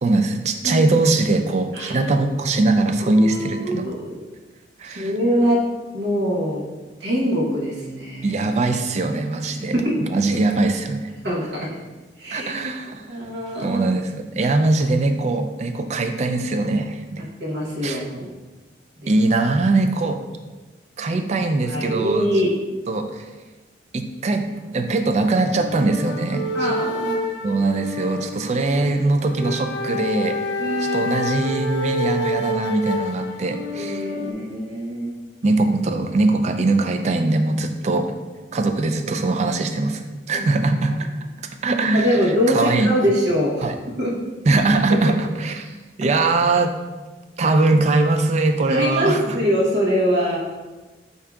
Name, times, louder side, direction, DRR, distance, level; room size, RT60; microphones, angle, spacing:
voice 1, 0.0-3.9 4.8-5.1 8.2-9.7 10.0-11.1 12.3-13.2 13.6-17.3 17.8-18.0 19.1-20.2 21.0-22.3 22.9-23.3 23.9-26.4 27.4-30.4 30.8-34.1 35.4-38.1 38.5-41.1 41.4-42.9 43.6-43.7 44.5-46.7 47.4-49.4, right 2 dB, 40° right, 6 dB, 0.3 m, -21 dB
voice 2, 3.0-4.2 4.8-5.6 5.9-6.7 7.0-8.3 9.6-10.0 10.3-10.4 11.2-11.7 12.2-12.5 13.1-13.8 17.4-18.3 19.0-19.1 21.1-21.2 21.7-22.5 26.5-27.2 30.6-31.1 33.7-35.1 40.3-40.4 41.9-44.2 44.9-45.0 48.7-50.4, equal, 70° right, -4 dB, 1.1 m, -23 dB
sound 1, 25.5-34.3, left 1 dB, 80° left, 0.6 m, -28 dB
8.3 x 2.8 x 2.3 m, 1.2 s
head